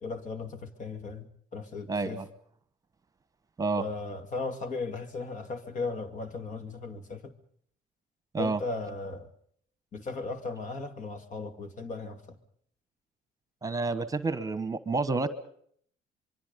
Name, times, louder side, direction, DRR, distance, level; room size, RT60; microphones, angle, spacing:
voice 1, 0.0-1.3 1.5-2.2 3.8-7.3 8.4-9.3 9.9-12.2, left 3 dB, 50° left, 2.4 m, -36 dB
voice 2, 1.9-2.3 3.6-3.8 8.3-8.6 13.6-15.3, right 3 dB, 20° right, 1.3 m, -29 dB
24.5 x 23.5 x 5.3 m
cardioid pair, 110°, 17 cm